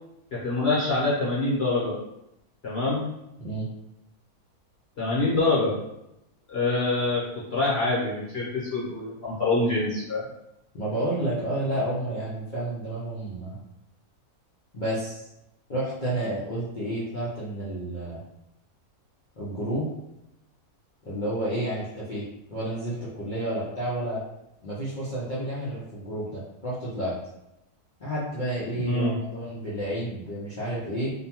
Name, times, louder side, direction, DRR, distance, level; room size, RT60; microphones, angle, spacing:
voice 1, 0.3-2.0 2.6-3.1 5.0-5.7 6.5-7.2 7.5-10.3 28.7-29.1, left 2 dB, 50° left, -7 dB, 0.9 m, -25 dB
voice 2, 10.7-13.6 14.7-15.3 15.7-18.2 19.4-19.9 21.0-22.2 22.5-24.2 24.6-27.1 28.0-31.1, right 1 dB, 65° left, -9 dB, 0.4 m, -30 dB
2.7 x 2.2 x 2.8 m, 0.85 s
omnidirectional pair, 1.7 m